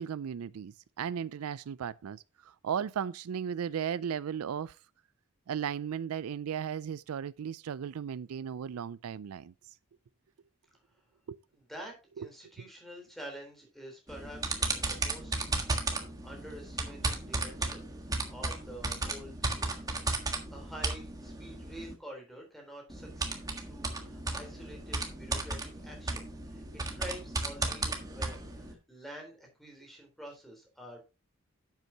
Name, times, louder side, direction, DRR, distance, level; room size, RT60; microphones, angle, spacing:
voice 1, 0.0-4.8 5.5-9.5 11.3-11.4 12.2-12.3, right 8 dB, 90° right, 0.4 m, -36 dB
voice 2, 11.5-15.5 16.0-17.9 18.3-19.7 20.2-26.6 26.9-31.1, equal, ahead, 3.8 m, -48 dB
sound 1, 14.1-21.9 22.9-28.7, right 2 dB, 15° right, 1.5 m, -35 dB
11.0 x 8.2 x 2.9 m
head